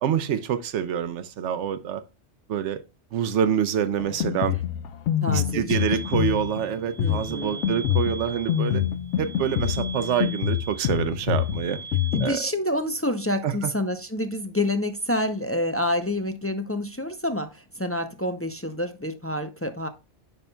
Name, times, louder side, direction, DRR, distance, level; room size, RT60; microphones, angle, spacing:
voice 1, 0.0-2.0 2.5-2.8 3.1-4.6 5.3-8.8 9.2-11.8 12.2-12.4 13.4-13.5, right 8 dB, 85° right, 1.0 m, -26 dB
Drum kit, 4.0-12.3, left 10 dB, 90° left, 0.9 m, -26 dB
voice 2, 5.2-5.8 7.0-7.7 12.1-19.9, left 1 dB, 20° left, 0.4 m, -28 dB
sound 1, 5.7-12.3, right 4 dB, 40° right, 1.1 m, -41 dB
9.4 x 5.4 x 2.3 m
omnidirectional pair, 1.2 m